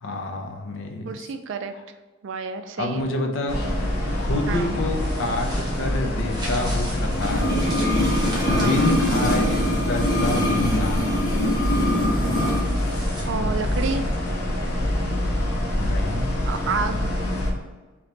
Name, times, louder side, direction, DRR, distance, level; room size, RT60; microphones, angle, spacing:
voice 1, 0.0-1.3 2.8-3.6 4.2-7.7 8.5-11.5 15.8-16.2, left 2 dB, 60° left, 3 dB, 0.6 m, -28 dB
voice 2, 1.0-1.7 2.2-3.1 4.5-4.8 8.6-9.0 13.2-14.1 16.5-17.1, right 4 dB, 60° right, 8 dB, 0.4 m, -29 dB
sound 1, 3.5-17.5, left 1 dB, 85° left, 1.0 m, -25 dB
sound 2, 4.7-10.5 11.9-14.2, equal, 20° right, 0.9 m, -36 dB
sound 3, 7.2-12.7 12.9-13.0, left 1 dB, 20° left, 0.9 m, -24 dB
3.1 x 2.9 x 4.1 m, 1.2 s
head